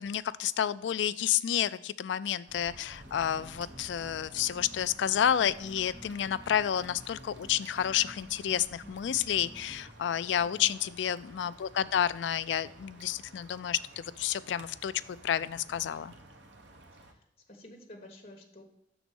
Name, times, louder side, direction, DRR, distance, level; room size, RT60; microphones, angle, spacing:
voice 1, 0.0-14.9 15.2-16.1, left 9 dB, 75° left, 15 dB, 0.3 m, -30 dB
sound 1, 2.5-17.1, right 2 dB, 85° right, 1.0 m, -53 dB
sound 2, 3.0-9.9, equal, 10° right, 0.7 m, -51 dB
voice 2, 10.6-10.9 16.9-18.6, left 1 dB, 35° left, 1 dB, 1.2 m, -51 dB
6.1 x 4.0 x 6.1 m, 0.80 s
head